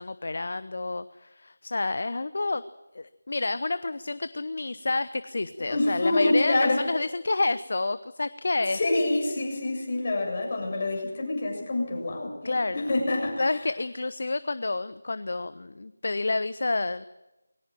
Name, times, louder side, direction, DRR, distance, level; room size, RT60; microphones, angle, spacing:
voice 1, 0.0-2.6 2.9-8.8 12.4-12.9 13.4-17.0, left 3 dB, 55° left, 14 dB, 0.8 m, -29 dB
voice 2, 5.7-6.8 8.7-13.4, left 2 dB, 35° left, 1 dB, 7.4 m, -26 dB
21.5 x 18.5 x 9.0 m, 0.99 s
figure-of-eight pair, 165°, 0 cm